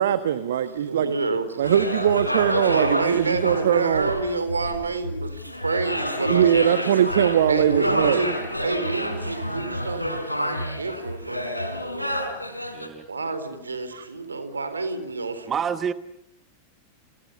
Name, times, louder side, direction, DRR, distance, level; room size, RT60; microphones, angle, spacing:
voice 1, 0.0-1.1 1.6-4.1 6.3-8.2 13.9-14.0, right 10 dB, 60° right, 12 dB, 1.4 m, -21 dB
voice 2, 0.9-1.6 2.7-5.3 5.6-6.8 7.5-8.3 8.6-11.9 13.1-15.6, right 3 dB, 75° right, 11 dB, 4.1 m, -28 dB
sound 1, 1.6-12.9, equal, 90° left, 4.6 m, -29 dB
voice 3, 12.7-13.1 15.5-15.9, right 7 dB, 25° right, 13 dB, 1.2 m, -27 dB
29.5 x 29.5 x 6.9 m, 0.78 s
figure-of-eight pair, 90°, 0 cm